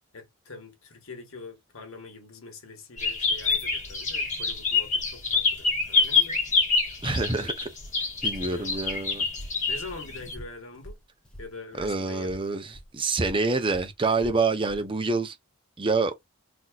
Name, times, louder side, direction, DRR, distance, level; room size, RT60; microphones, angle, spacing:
voice 1, 0.1-6.4 8.3-9.1 9.7-11.0 11.4-12.3, left 3 dB, 75° left, 1.4 m, -44 dB
sound 1, 3.0-10.3, left 4 dB, 35° left, 1.4 m, -26 dB
voice 2, 7.0-7.7 8.2-9.3 11.7-15.3 15.8-16.1, right 3 dB, 25° right, 0.6 m, -27 dB
Walk footsteps, 7.2-12.0 12.2-14.9, equal, 5° left, 0.8 m, -46 dB
4.0 x 2.7 x 2.4 m
head